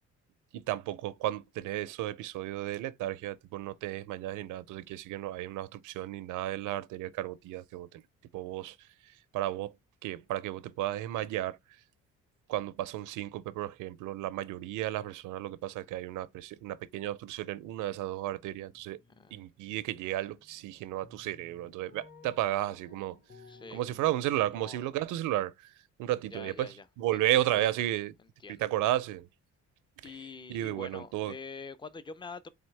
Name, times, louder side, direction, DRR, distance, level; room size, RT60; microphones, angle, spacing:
voice 1, 0.5-8.0 8.3-8.8 9.3-9.7 10.0-11.6 12.5-19.0 19.3-23.2 23.7-25.7 26.0-28.1 28.5-29.3 30.0-30.2 30.5-31.3, right 14 dB, 85° right, 0.5 m, -33 dB
sound 1, 18.7-20.0 20.4-24.9, left 4 dB, 35° left, 1.3 m, -57 dB
voice 2, 23.5-23.8 24.6-24.8 26.3-26.8 27.3-27.7 28.4-28.7 30.0-32.5, left 4 dB, 15° left, 0.5 m, -45 dB
3.9 x 3.5 x 3.2 m
cardioid pair, 90°, 30 cm